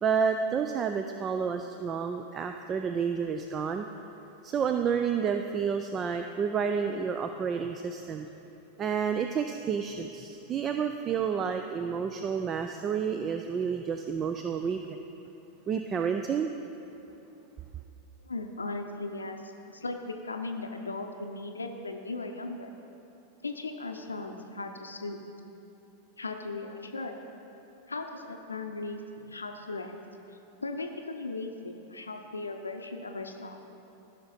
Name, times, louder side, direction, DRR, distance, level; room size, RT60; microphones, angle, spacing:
voice 1, 0.0-3.9 4.4-8.3 8.8-15.0 15.7-16.5, right 6 dB, 25° right, 6 dB, 0.4 m, -30 dB
voice 2, 18.2-22.7 23.4-25.2 26.2-27.2 27.9-29.9 30.3-33.6, left 3 dB, 75° left, 4 dB, 0.6 m, -37 dB
15.0 x 5.8 x 4.1 m, 2.9 s
figure-of-eight pair, 90°, 0 cm